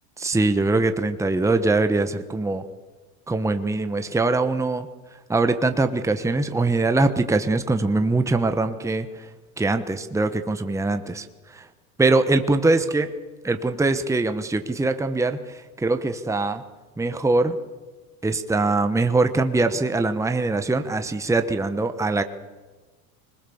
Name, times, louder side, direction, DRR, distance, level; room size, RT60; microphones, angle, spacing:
voice 1, 0.2-2.6 3.3-4.9 5.3-9.3 9.6-11.7 12.0-13.1 13.4-16.6 17.0-17.6 18.2-22.2, right 3 dB, 5° right, 8 dB, 1.1 m, -22 dB
22.0 x 20.5 x 7.1 m, 1.3 s
supercardioid pair, 105°, 44 cm